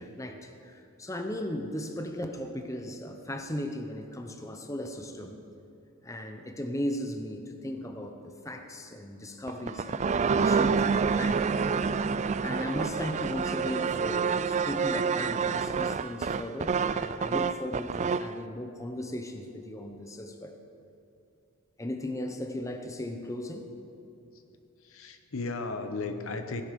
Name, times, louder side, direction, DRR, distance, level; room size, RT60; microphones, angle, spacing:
voice 1, 0.0-5.4 6.0-11.8 12.4-20.6 21.8-23.7, left 1 dB, 15° left, 5 dB, 0.9 m, -37 dB
sound 1, 9.5-18.3, right 5 dB, 35° right, 0.3 m, -28 dB
voice 2, 24.3-26.6, left 3 dB, 70° left, 7 dB, 1.0 m, -36 dB
16.0 x 11.0 x 5.3 m, 2.8 s
head